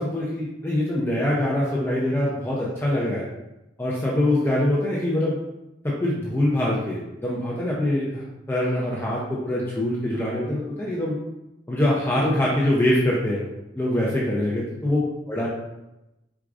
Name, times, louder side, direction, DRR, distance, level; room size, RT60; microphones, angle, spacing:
voice 1, 0.0-3.2 3.8-5.4 5.8-11.2 11.7-13.5 13.8-15.5, left 1 dB, 15° left, -5 dB, 0.5 m, -24 dB
4.7 x 3.6 x 2.5 m, 0.95 s
head